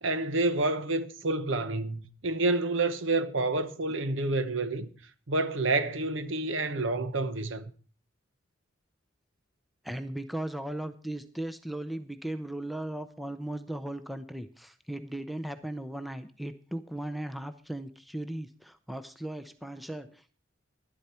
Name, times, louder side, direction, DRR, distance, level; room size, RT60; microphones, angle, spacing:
voice 1, 0.0-4.9 5.3-7.6, right 2 dB, 70° right, 1.0 m, -28 dB
voice 2, 9.8-20.3, right 1 dB, ahead, 0.6 m, -37 dB
11.5 x 11.5 x 4.3 m
head